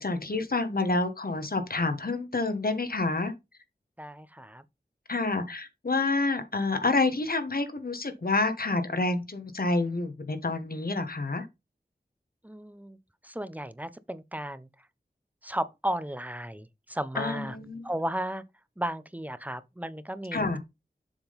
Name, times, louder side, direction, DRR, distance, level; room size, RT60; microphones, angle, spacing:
voice 1, 0.0-3.3 5.1-11.5 17.1-17.8 20.3-20.6, left 3 dB, 60° left, 1.4 m, -28 dB
voice 2, 4.0-4.6 12.4-13.0 13.2-14.7 15.4-17.6 17.8-18.4 18.8-20.6, right 1 dB, 10° right, 0.7 m, -34 dB
7.2 x 3.8 x 5.2 m
wide cardioid pair, 40°, 17 cm